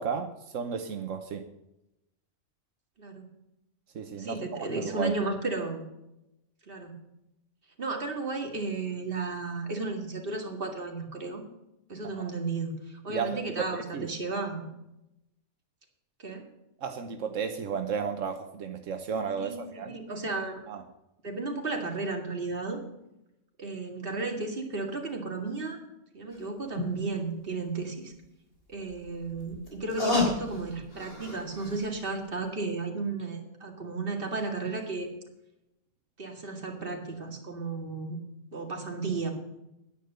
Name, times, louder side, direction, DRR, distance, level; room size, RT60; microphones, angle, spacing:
voice 1, 0.0-1.5 3.9-5.1 12.0-12.3 13.1-14.1 16.8-19.9 20.7-20.8, right 6 dB, 85° right, 6 dB, 1.3 m, -33 dB
voice 2, 4.2-5.8 6.7-6.9 7.8-11.4 11.9-14.7 16.2-16.4 19.4-20.6 21.2-22.8 23.6-25.8 26.1-28.1 28.7-35.1 36.2-38.2 38.5-39.3, right 3 dB, 45° right, 2 dB, 2.4 m, -34 dB
sound 1, 26.3-26.4 26.7-26.9 28.7-31.9 32.2-32.3, left 2 dB, 50° left, 3.6 m, -31 dB
10.5 x 10.0 x 6.8 m, 0.87 s
omnidirectional pair, 1.3 m